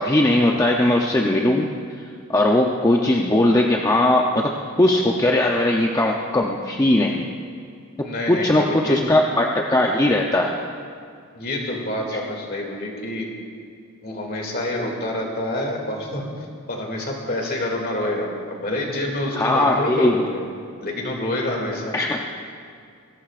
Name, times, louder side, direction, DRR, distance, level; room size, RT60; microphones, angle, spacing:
voice 1, 0.0-1.7 2.0-7.3 8.3-10.6 19.3-20.1 21.9-22.2, left 1 dB, 15° left, 0 dB, 0.6 m, -19 dB
voice 2, 8.0-9.0 11.4-13.3 14.0-16.3 16.7-20.4 20.8-22.0, left 1 dB, 45° left, 0 dB, 2.4 m, -27 dB
21.0 x 17.0 x 2.5 m, 2.3 s
head